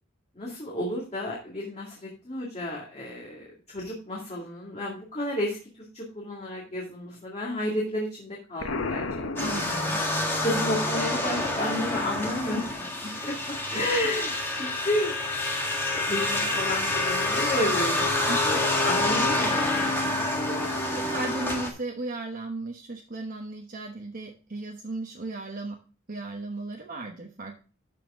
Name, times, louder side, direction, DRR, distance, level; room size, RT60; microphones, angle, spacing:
voice 1, 0.4-9.0 9.3-9.5 10.4-13.3 13.7-15.1 15.9-19.9 20.3-20.7 21.0-21.1, left 1 dB, 30° left, -3 dB, 2.1 m, -32 dB
Explosion, 8.6-10.4, left 3 dB, 80° left, 1.0 m, -33 dB
sound 1, 9.4-21.7, left 2 dB, 10° left, 1.7 m, -27 dB
voice 2, 9.4-10.0 13.7-14.1 18.3-18.6 20.9-25.8 26.1-27.6, right 2 dB, 45° right, 0 dB, 1.0 m, -36 dB
12.5 x 4.5 x 3.6 m, 0.34 s
head